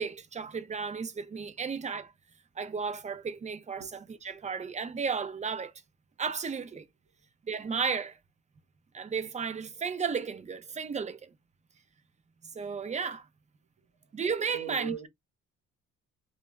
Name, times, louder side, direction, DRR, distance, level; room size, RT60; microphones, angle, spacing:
voice 1, 0.0-2.1 2.6-4.0 4.2-5.7 6.2-6.9 7.5-8.2 8.9-11.3 12.5-13.3 14.1-15.1, right 5 dB, 25° right, 0.4 m, -33 dB
voice 2, 13.8-14.1 14.5-15.1, right 10 dB, 75° right, 0.9 m, -40 dB
2.2 x 2.0 x 3.3 m
cardioid pair, 90°, 30 cm